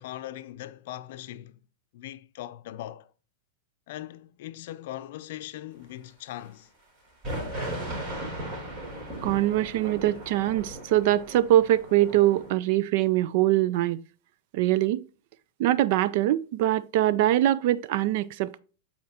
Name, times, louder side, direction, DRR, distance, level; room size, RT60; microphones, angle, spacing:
voice 1, 0.0-1.6 1.9-3.1 3.9-6.7, left 13 dB, 65° left, 0.5 m, -40 dB
sound 1, 7.2-12.5, right 1 dB, 35° right, 3.2 m, -37 dB
voice 2, 9.2-14.0 14.5-15.0 15.6-18.6, right 14 dB, 55° right, 0.4 m, -23 dB
11.5 x 4.3 x 2.8 m
hypercardioid pair, 125°, 0 cm